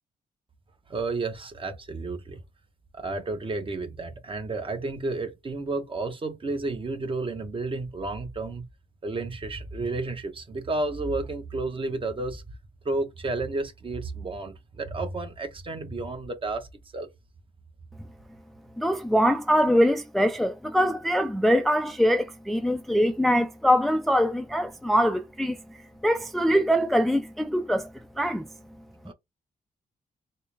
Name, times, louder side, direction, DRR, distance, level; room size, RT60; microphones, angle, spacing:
voice 1, 0.9-2.4 2.9-8.6 9.0-12.4 12.8-16.7 16.9-17.1 29.1-29.2, right 3 dB, 35° right, 1.0 m, -31 dB
voice 2, 18.8-25.6 26.0-27.9 28.2-28.5, equal, ahead, 0.4 m, -23 dB
4.3 x 2.1 x 3.3 m
cardioid pair, 90°, 15 cm